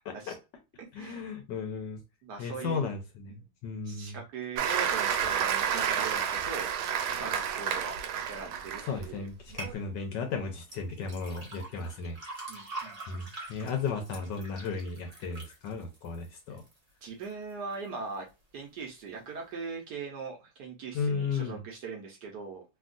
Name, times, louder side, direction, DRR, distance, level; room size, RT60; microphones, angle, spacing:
voice 1, 0.1-0.4 0.9-2.0 2.4-4.2 8.8-12.2 13.1-16.6 20.9-21.6, left 5 dB, 70° left, 1.1 m, -35 dB
voice 2, 0.8-1.3 2.2-2.9 3.3-3.5 3.8-8.0 8.3-9.3 12.5-13.3 17.0-18.3 18.5-22.6, right 5 dB, 65° right, 1.1 m, -41 dB
Applause, 4.6-9.0 9.5-9.7, right 8 dB, 90° right, 1.5 m, -30 dB
sound 1, 9.6-9.7 10.6-16.8 17.2-17.7 18.2-18.3, right 2 dB, 35° right, 0.6 m, -44 dB
3.5 x 2.3 x 2.4 m
omnidirectional pair, 2.2 m